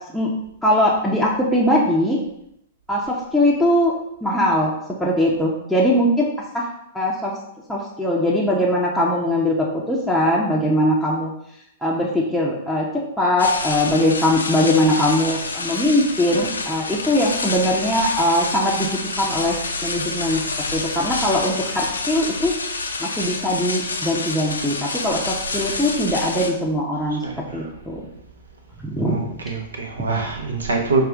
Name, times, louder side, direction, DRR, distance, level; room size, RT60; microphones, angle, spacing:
voice 1, 0.6-2.2 2.9-3.9 4.2-4.7 5.0-6.3 6.5-6.7 6.9-7.3 7.7-11.3 11.8-12.9 13.2-20.4 20.7-22.5 23.0-27.2 27.5-28.0 28.8-29.4, left 1 dB, ahead, -4 dB, 0.7 m, -21 dB
sound 1, 13.4-26.5, left 3 dB, 75° left, 0.5 m, -28 dB
voice 2, 27.1-27.8 29.0-31.0, right 3 dB, 75° right, 2 dB, 0.9 m, -25 dB
5.6 x 2.4 x 3.6 m, 0.77 s
figure-of-eight pair, 105°, 0 cm